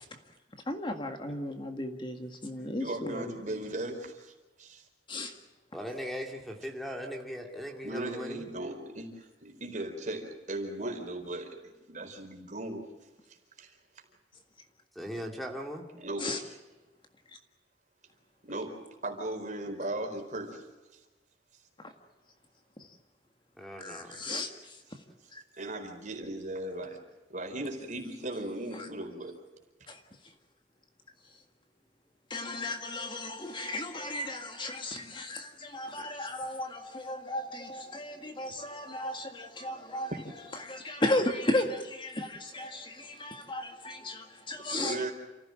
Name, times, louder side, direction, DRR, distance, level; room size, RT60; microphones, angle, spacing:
voice 1, 0.7-3.3 5.1-5.3 16.2-16.4 23.8-24.8 25.3-25.4 28.7-28.9 29.9-30.0 32.3-45.1, left 1 dB, 25° left, 1.8 m, -35 dB
voice 2, 2.8-4.8 7.8-12.9 13.6-13.7 16.0-16.3 18.4-18.8 19.0-20.7 24.0-24.3 25.6-27.0 27.3-29.4 40.1-40.2 44.8-45.1, right 1 dB, 45° right, 4.3 m, -37 dB
voice 3, 5.7-8.4 14.9-15.8 23.6-24.2, equal, ahead, 2.5 m, -39 dB
29.0 x 15.5 x 7.7 m
head